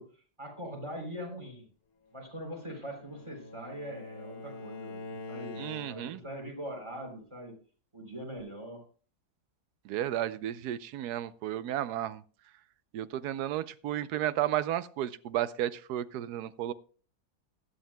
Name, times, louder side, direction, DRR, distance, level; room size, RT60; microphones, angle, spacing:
voice 1, 0.0-1.7 2.1-5.6 5.9-7.6 7.9-8.8, equal, 15° right, 1 dB, 3.6 m, -42 dB
Bowed string instrument, 2.3-6.3, left 3 dB, 70° left, 1.5 m, -45 dB
voice 2, 5.6-6.2 9.8-12.2 12.9-16.7, right 12 dB, 80° right, 15 dB, 1.2 m, -33 dB
16.5 x 11.5 x 2.2 m, 0.40 s
omnidirectional pair, 1.7 m